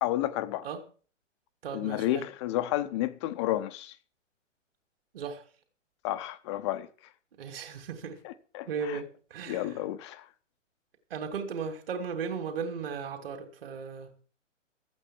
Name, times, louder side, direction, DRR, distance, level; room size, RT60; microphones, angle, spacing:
voice 1, 0.0-0.7 1.7-3.9 6.0-6.9 8.2-9.0 9.5-10.2, left 14 dB, 20° left, 0.8 m, -31 dB
voice 2, 1.6-2.3 5.1-5.4 7.4-8.2 8.7-9.8 11.1-14.1, right 5 dB, 45° right, 2.8 m, -36 dB
14.0 x 8.6 x 7.4 m
figure-of-eight pair, 125°, 38 cm